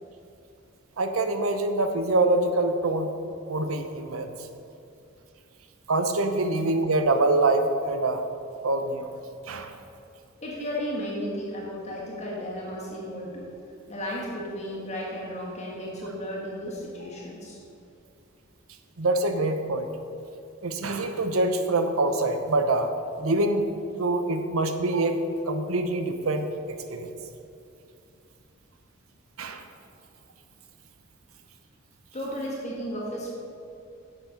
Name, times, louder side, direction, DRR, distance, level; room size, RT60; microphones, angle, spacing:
voice 1, 1.0-3.1 3.5-4.3 5.9-8.2 8.6-9.1 9.5-9.7 19.0-19.9 20.6-22.9 23.2-23.7 24.0-25.2 25.5-27.1 29.4-29.6, right 2 dB, 85° right, 7 dB, 0.8 m, -25 dB
voice 2, 10.4-13.5 13.9-17.6 32.1-33.3, equal, 35° left, -4 dB, 1.6 m, -34 dB
10.0 x 7.6 x 5.1 m, 2.6 s
head